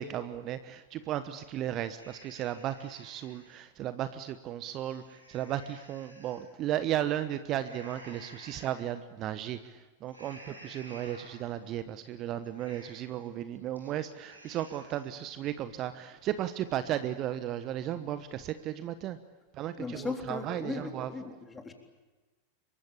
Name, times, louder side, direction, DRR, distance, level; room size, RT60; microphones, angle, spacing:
voice 1, 0.0-5.0 5.3-9.6 10.0-19.2 19.6-21.1, right 11 dB, 35° right, 12 dB, 1.1 m, -35 dB
sound 1, 2.0-3.6 4.0-4.1 4.6-6.5 7.5-8.8 9.2-9.6 10.1-11.6 12.0-12.1 12.4-13.2 13.6-13.9 14.2-15.1, right 1 dB, 90° right, 7.6 m, -53 dB
voice 2, 19.8-21.7, left 3 dB, 15° left, 4 dB, 3.6 m, -37 dB
27.0 x 23.5 x 8.6 m, 1.2 s
figure-of-eight pair, 90°, 0 cm